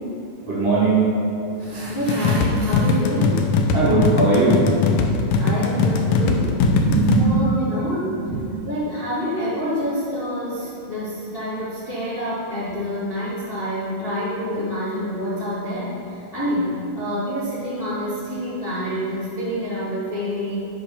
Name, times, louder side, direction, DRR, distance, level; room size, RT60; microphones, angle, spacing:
voice 1, 0.5-1.2 3.7-4.6 6.8-7.5 8.2-8.5, right 3 dB, 50° right, -7 dB, 2.2 m, -19 dB
voice 2, 1.5-3.5 5.4-6.6 7.2-8.1 8.6-20.6, equal, 25° left, -10 dB, 1.3 m, -27 dB
sound 1, 2.1-7.2, left 4 dB, 75° left, 2.2 m, -20 dB
10.0 x 5.2 x 5.6 m, 2.8 s
omnidirectional pair, 4.0 m